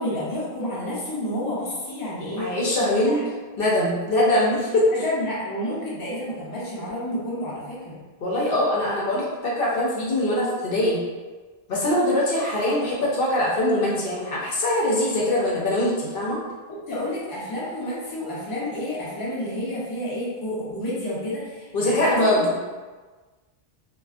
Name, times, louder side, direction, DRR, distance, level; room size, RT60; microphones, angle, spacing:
voice 1, 0.0-2.5 3.1-3.3 4.9-8.0 16.7-22.6, left 1 dB, 25° left, -7 dB, 0.6 m, -30 dB
voice 2, 2.4-3.2 3.6-4.8 8.2-11.0 11.7-16.4 21.7-22.5, left 1 dB, 65° left, -5 dB, 0.8 m, -22 dB
2.4 x 2.3 x 2.3 m, 1.3 s
omnidirectional pair, 1.0 m